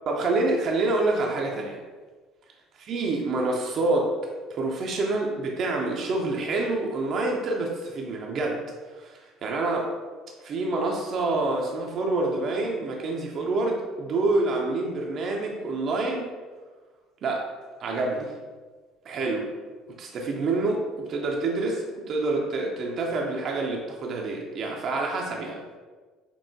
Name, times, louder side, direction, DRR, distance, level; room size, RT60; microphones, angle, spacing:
voice 1, 0.1-1.8 2.8-4.1 4.5-9.9 10.4-16.3 17.2-17.5 17.8-18.3 19.0-19.5 20.0-25.6, right 2 dB, 45° right, 0 dB, 0.6 m, -27 dB
6.2 x 3.0 x 2.6 m, 1.4 s
figure-of-eight pair, 55°, 0 cm